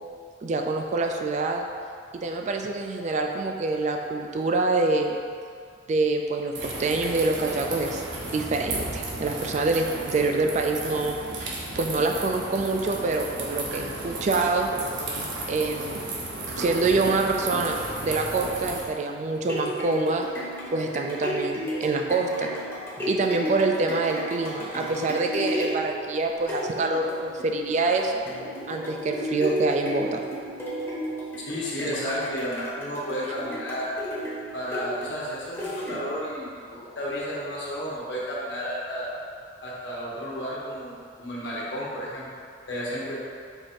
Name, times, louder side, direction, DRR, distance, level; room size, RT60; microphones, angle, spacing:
voice 1, 0.4-1.6 2.1-5.2 5.9-8.0 8.3-14.7 15.5-16.0 16.6-20.3 20.7-22.5 23.1-28.2 28.7-30.2, right 3 dB, 40° right, 3 dB, 0.3 m, -26 dB
sound 1, 6.5-18.9, right 2 dB, 80° right, 0.7 m, -34 dB
sound 2, 19.4-36.3 36.8-36.9, equal, 15° left, 0.8 m, -34 dB
voice 2, 31.5-33.9 34.5-39.1 39.6-42.3 42.7-43.2, equal, 80° left, -7 dB, 1.2 m, -32 dB
4.6 x 2.6 x 4.3 m, 2.2 s
head